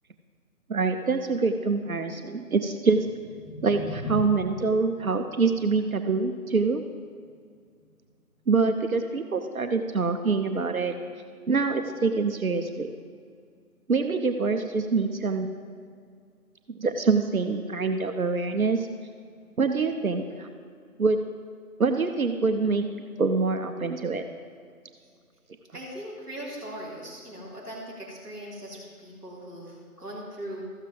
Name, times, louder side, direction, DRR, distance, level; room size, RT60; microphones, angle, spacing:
voice 1, 0.7-3.1 3.6-6.8 8.5-10.9 11.5-12.9 13.9-15.5 16.7-18.9 19.6-20.5 21.0-21.2 21.8-22.8 23.2-24.2, right 4 dB, 65° right, 6 dB, 0.8 m, -25 dB
sound 1, 2.9-9.0, equal, 65° left, 2.7 m, -40 dB
voice 2, 25.7-30.6, equal, ahead, -19 dB, 1.7 m, -40 dB
13.5 x 8.1 x 3.9 m, 2.1 s
figure-of-eight pair, 160°, 45 cm